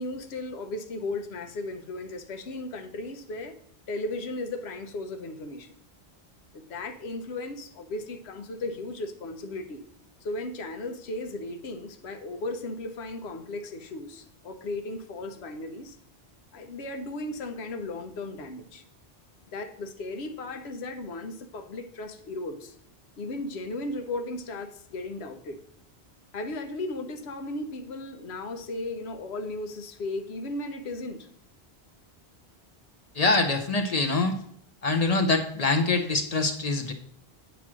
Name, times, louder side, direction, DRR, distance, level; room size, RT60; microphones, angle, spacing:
voice 1, 0.0-3.6 3.9-5.7 6.5-9.8 10.2-16.0 16.5-18.8 19.5-22.8 23.2-25.6 26.3-31.3, left 2 dB, 85° left, 7 dB, 1.0 m, -36 dB
voice 2, 33.2-34.4 34.8-36.9, left 3 dB, 45° left, 5 dB, 0.6 m, -24 dB
8.5 x 3.0 x 6.0 m, 0.68 s
omnidirectional pair, 1.1 m